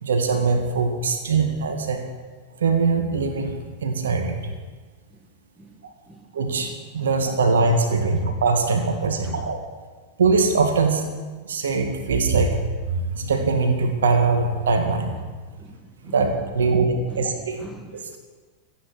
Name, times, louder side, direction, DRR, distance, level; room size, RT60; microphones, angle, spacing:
voice 1, 0.0-2.0 2.6-3.5 3.8-4.4 6.3-9.6 10.2-11.0 11.4-12.6 12.9-15.2 16.0-17.6 17.9-18.2, right 4 dB, 65° right, 5 dB, 2.1 m, -22 dB
voice 2, 8.7-9.5 15.6-16.8 17.1-17.3 17.6-18.2, right 2 dB, ahead, 4 dB, 1.6 m, -45 dB
26.5 x 9.5 x 4.9 m, 1.4 s
figure-of-eight pair, 90°, 0 cm